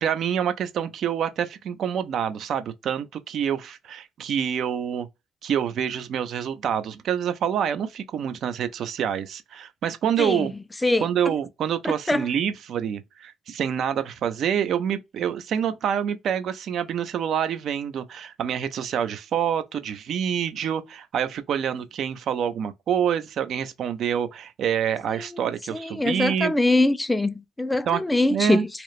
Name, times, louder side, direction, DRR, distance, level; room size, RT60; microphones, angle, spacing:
voice 1, 0.0-5.1 5.4-10.5 11.0-26.5 27.9-28.0 28.3-28.7, right 8 dB, 65° right, 0.4 m, -27 dB
voice 2, 10.8-11.3 11.8-12.3 25.7-28.7, left 2 dB, 15° left, 0.4 m, -23 dB
2.9 x 2.0 x 2.4 m
supercardioid pair, 65°, 0 cm